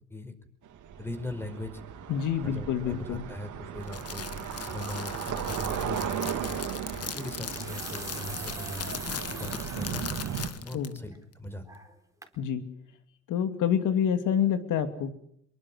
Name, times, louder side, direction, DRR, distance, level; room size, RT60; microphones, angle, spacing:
sound 1, 0.7-10.5, right 8 dB, 80° right, 3.4 m, -36 dB
voice 1, 1.0-1.8 2.4-6.6 7.0-11.7, left 1 dB, 10° left, 9 dB, 4.8 m, -40 dB
voice 2, 2.1-3.2 10.7-11.0 12.4-12.6 13.3-15.1, left 8 dB, 85° left, 9 dB, 2.6 m, -27 dB
Crackle, 3.8-11.0, left 8 dB, 55° left, 1.6 m, -39 dB
sound 2, 6.1-6.3 7.3-10.6 11.0-11.1 11.7-12.0 12.2-12.4, right 2 dB, 10° right, 3.9 m, -43 dB
25.0 x 23.0 x 6.3 m, 0.71 s
cardioid pair, 90°, 30 cm